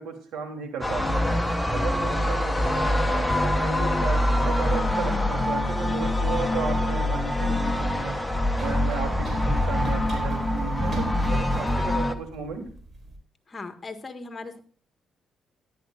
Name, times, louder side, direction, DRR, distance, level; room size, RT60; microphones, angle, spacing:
voice 1, 0.0-1.4 1.7-12.6, right 5 dB, 80° right, 3 dB, 3.2 m, -34 dB
sound 1, 0.8-12.2, left 1 dB, 5° left, 1.1 m, -24 dB
Run, 5.2-13.2, right 1 dB, 45° right, 4.1 m, -40 dB
voice 2, 13.5-14.6, left 3 dB, 30° left, 6 dB, 1.6 m, -38 dB
13.5 x 11.5 x 2.5 m, 0.41 s
cardioid pair, 90°, 0 cm